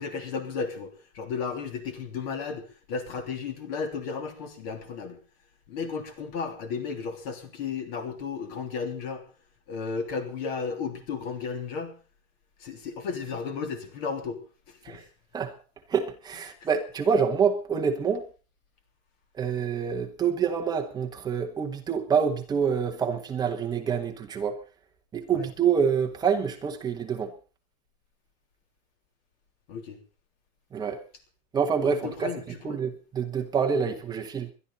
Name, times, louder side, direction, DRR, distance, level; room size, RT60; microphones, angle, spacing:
voice 1, 0.0-5.2 5.7-9.2 9.7-12.0 12.6-14.4 14.7-15.1 16.6-16.7 25.3-25.4 29.7-30.0 31.8-32.8, left 5 dB, 40° left, 3.2 m, -34 dB
voice 2, 15.9-18.3 19.4-24.6 25.1-27.3 30.7-31.0 31.5-34.5, right 6 dB, 10° right, 1.0 m, -27 dB
22.0 x 12.0 x 4.0 m
supercardioid pair, 175°, 41 cm